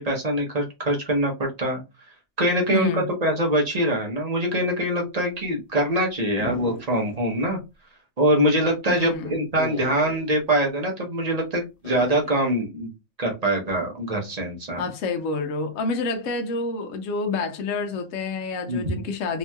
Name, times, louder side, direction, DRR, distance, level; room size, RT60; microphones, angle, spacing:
voice 1, 0.0-1.8 2.4-7.6 8.2-12.9 13.2-14.8 18.7-19.0, right 1 dB, 40° right, 0.6 m, -24 dB
voice 2, 2.7-3.0 8.9-9.4 14.8-19.4, left 3 dB, 70° left, 0.9 m, -28 dB
sound 1, 6.4-7.2 7.5-7.6 9.5-10.3 11.8-12.4, left 2 dB, 40° left, 1.2 m, -37 dB
2.9 x 2.7 x 2.2 m
omnidirectional pair, 1.5 m